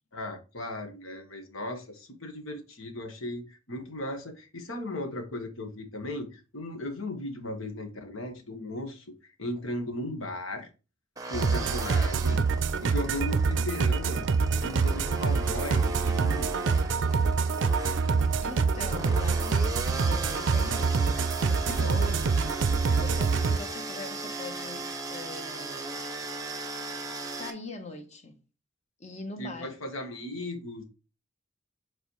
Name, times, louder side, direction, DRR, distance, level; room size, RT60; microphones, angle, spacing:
voice 1, 0.1-9.0 9.4-10.7 11.3-12.4 12.8-14.3 14.6-16.5 21.7-22.1 29.4-30.8, left 1 dB, 90° left, 1.5 m, -36 dB
sound 1, 11.2-27.5, right 2 dB, 15° right, 0.7 m, -37 dB
sound 2, 11.3-23.6, right 4 dB, 60° right, 0.4 m, -26 dB
voice 2, 18.4-26.1 27.3-28.4 29.0-29.7, left 3 dB, 35° left, 1.0 m, -42 dB
7.8 x 4.1 x 3.2 m
head